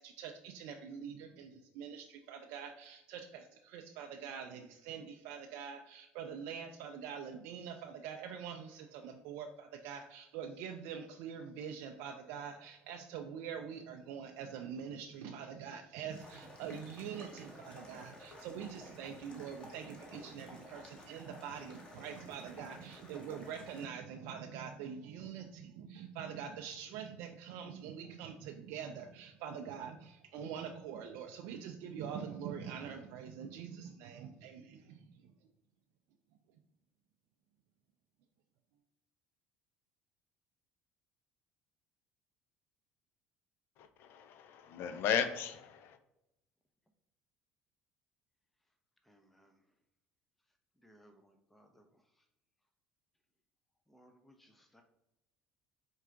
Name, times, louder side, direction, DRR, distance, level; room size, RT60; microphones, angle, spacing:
voice 1, 0.0-35.3, right 7 dB, 75° right, 4 dB, 0.4 m, -45 dB
sound 1, 16.1-23.9, left 1 dB, 25° left, 1.2 m, -53 dB
voice 2, 43.8-46.0, left 8 dB, 65° left, 10 dB, 0.5 m, -36 dB
voice 3, 49.1-49.5 50.8-51.8 53.9-54.8, equal, 5° left, 4 dB, 0.5 m, -64 dB
4.4 x 2.4 x 3.7 m, 0.90 s
supercardioid pair, 90°, 4 cm